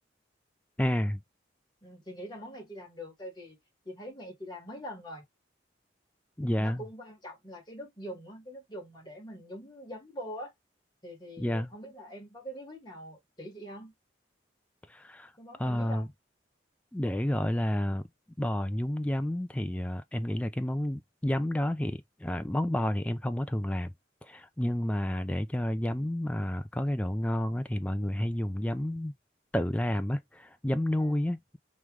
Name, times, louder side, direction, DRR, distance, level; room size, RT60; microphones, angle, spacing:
voice 1, 0.8-1.2 6.4-6.8 11.4-11.7 14.9-15.3 15.6-16.1 16.9-18.1 18.4-23.9 24.2-29.1 29.5-31.6, left 1 dB, 5° left, 0.3 m, -30 dB
voice 2, 1.8-3.6 3.9-5.2 6.6-10.5 11.0-13.9 15.4-16.1 31.0-31.2, equal, 25° left, 1.7 m, -43 dB
3.1 x 3.0 x 3.6 m
head